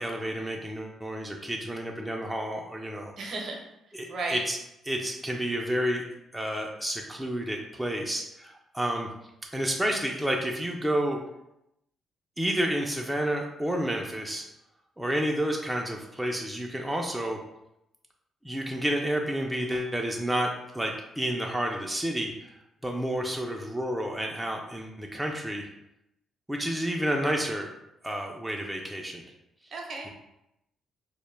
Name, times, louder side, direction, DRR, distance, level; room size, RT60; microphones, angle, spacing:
voice 1, 0.0-3.1 3.9-4.6 4.9-6.0 6.3-9.1 9.5-11.2 12.4-14.5 15.0-17.4 18.4-20.5 20.7-22.5 22.8-25.7 26.5-27.7 28.0-29.2, right 1 dB, 5° right, 0 dB, 0.3 m, -30 dB
voice 2, 3.2-3.6 4.1-4.4 29.7-30.1, right 3 dB, 60° right, 0 dB, 0.6 m, -34 dB
2.1 x 2.1 x 3.1 m, 0.86 s
cardioid pair, 90°, 0 cm